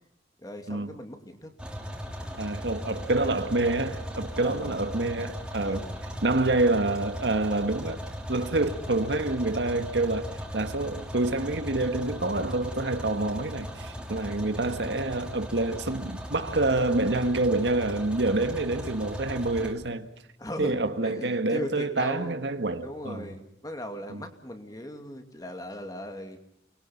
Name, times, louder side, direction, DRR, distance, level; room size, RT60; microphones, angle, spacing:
voice 1, 0.4-1.5 4.4-4.8 5.6-6.0 20.4-22.4 22.8-26.4, left 1 dB, 20° left, 2.5 m, -38 dB
sound 1, 1.6-19.7, equal, 5° right, 3.2 m, -38 dB
voice 2, 2.4-5.9 6.2-8.0 8.3-20.1 20.6-23.3 24.1-24.2, right 2 dB, 75° right, 1.6 m, -27 dB
29.5 x 21.5 x 5.9 m
head